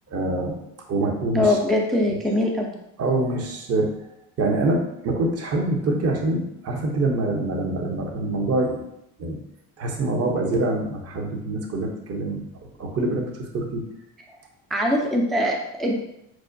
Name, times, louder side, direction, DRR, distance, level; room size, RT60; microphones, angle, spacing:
voice 1, 0.1-0.6 0.9-1.6 3.0-4.0 4.4-8.8 9.2-9.4 9.8-12.4 12.8-13.8, right 2 dB, 35° right, 2 dB, 0.7 m, -25 dB
voice 2, 1.3-2.7 14.3-14.4 14.7-15.9, left 1 dB, ahead, 1 dB, 0.3 m, -22 dB
6.1 x 2.1 x 2.5 m, 0.82 s
supercardioid pair, 90°, 45 cm